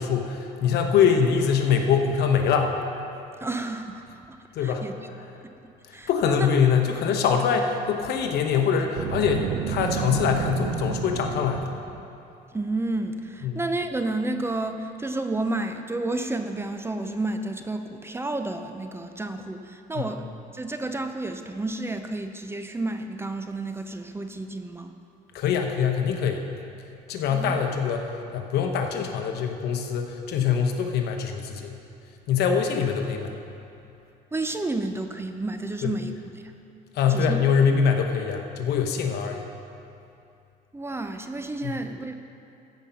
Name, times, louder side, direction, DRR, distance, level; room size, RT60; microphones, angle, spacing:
voice 1, 0.0-2.7 4.5-4.8 5.9-11.7 13.4-13.6 19.9-20.0 25.3-26.4 27.1-31.8 32.3-33.4 35.8-35.9 36.9-39.5 41.6-41.7, left 6 dB, 75° left, 4 dB, 1.0 m, -24 dB
voice 2, 3.4-4.9 5.4-6.5 12.5-24.9 27.3-27.6 34.3-36.1 36.4-36.5 37.1-37.4 40.7-42.2, right 2 dB, 15° right, 7 dB, 0.6 m, -31 dB
Boom, 8.9-12.0, right 7 dB, 75° right, 0.7 m, -30 dB
14.5 x 5.3 x 5.8 m, 2.7 s
cardioid pair, 110°, 17 cm